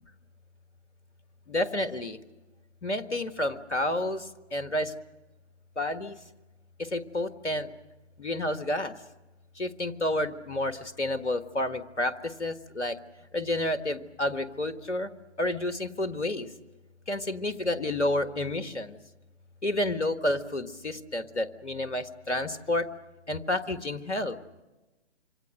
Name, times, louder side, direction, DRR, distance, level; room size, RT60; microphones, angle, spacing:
voice 1, 1.5-2.2 2.8-4.9 5.8-6.2 6.8-7.7 8.2-8.9 9.6-13.0 13.3-15.1 15.4-16.5 17.1-19.0 19.6-22.9 23.3-24.4, left 1 dB, 75° left, 11 dB, 1.6 m, -30 dB
26.5 x 25.5 x 6.6 m, 1.1 s
figure-of-eight pair, 130°, 35 cm